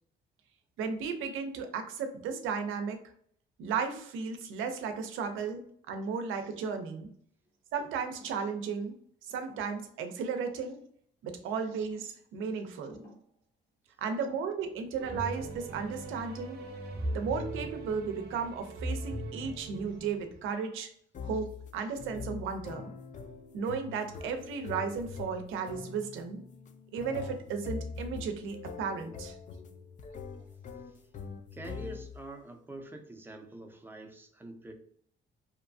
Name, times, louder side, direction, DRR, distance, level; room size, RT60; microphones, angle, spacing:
voice 1, 0.8-3.0 3.6-5.6 5.9-7.1 7.7-8.9 9.2-10.8 11.2-13.0 14.0-16.6 17.1-20.9 21.2-22.9 23.5-26.4 26.9-29.4, right 5 dB, 85° right, 6 dB, 0.5 m, -35 dB
sound 1, 8.2-8.5 9.3-9.9 10.4-10.7 11.6-12.0 12.9-13.3 14.1-14.4, equal, 65° left, 0.7 m, -54 dB
sound 2, 15.0-20.5, right 1 dB, 55° right, 0.7 m, -39 dB
sound 3, 21.1-32.3, left 5 dB, 40° left, 0.4 m, -43 dB
voice 2, 31.5-34.7, right 1 dB, 10° right, 3 dB, 0.5 m, -45 dB
2.8 x 2.2 x 2.5 m, 0.62 s
cardioid pair, 90°, 20 cm